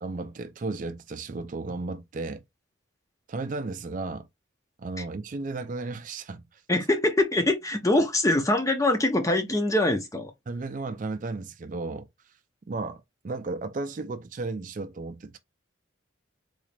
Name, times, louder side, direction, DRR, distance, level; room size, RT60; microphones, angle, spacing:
voice 1, 0.0-2.4 3.3-4.3 4.8-6.6 10.5-12.1 12.7-15.4, right 3 dB, 40° right, 0.4 m, -34 dB
voice 2, 6.7-10.3, left 1 dB, 15° left, 0.5 m, -24 dB
3.9 x 2.4 x 3.2 m
head